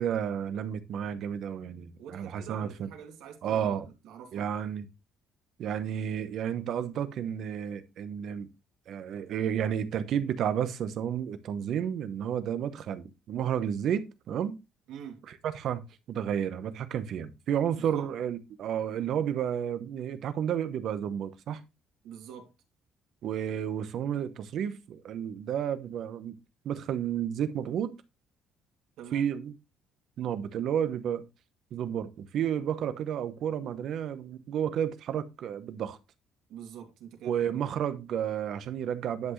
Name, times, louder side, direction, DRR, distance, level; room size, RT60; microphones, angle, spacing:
voice 1, 0.0-2.9 3.4-3.9 4.3-4.8 5.6-8.5 8.9-14.6 15.3-15.8 16.1-21.6 23.2-26.4 26.6-28.0 29.1-29.5 30.2-31.2 31.7-36.0 37.2-39.3, right 9 dB, 50° right, 1.0 m, -31 dB
voice 2, 2.0-3.8 4.0-4.5 14.9-15.3 17.8-18.1 22.0-22.5 29.0-29.3 36.5-37.5, right 8 dB, 75° right, 2.5 m, -45 dB
10.5 x 6.0 x 3.2 m
cardioid pair, 165°, 0 cm